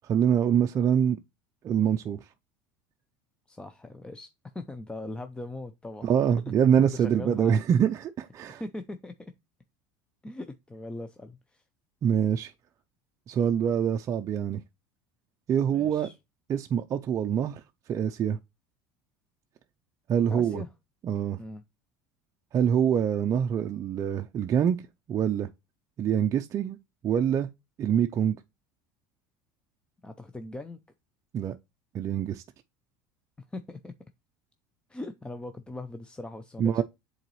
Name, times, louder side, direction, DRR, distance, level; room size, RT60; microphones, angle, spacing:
voice 1, 0.0-1.2 1.6-2.2 6.0-8.6 12.0-12.5 13.3-14.6 15.5-16.1 16.5-17.6 17.9-18.4 20.1-20.6 21.0-21.4 22.5-24.8 25.1-25.5 26.0-26.8 27.0-27.5 27.8-28.4 31.3-31.6 31.9-32.4 36.6-36.8, right 8 dB, 35° right, 0.4 m, -25 dB
voice 2, 3.5-4.3 4.5-6.1 6.9-7.6 8.6-9.3 10.2-11.6 15.7-16.2 20.3-20.7 21.4-21.6 30.0-30.8 33.5-33.9 34.9-36.8, left 2 dB, 10° left, 0.5 m, -40 dB
7.9 x 3.9 x 3.0 m
supercardioid pair, 110°, 9 cm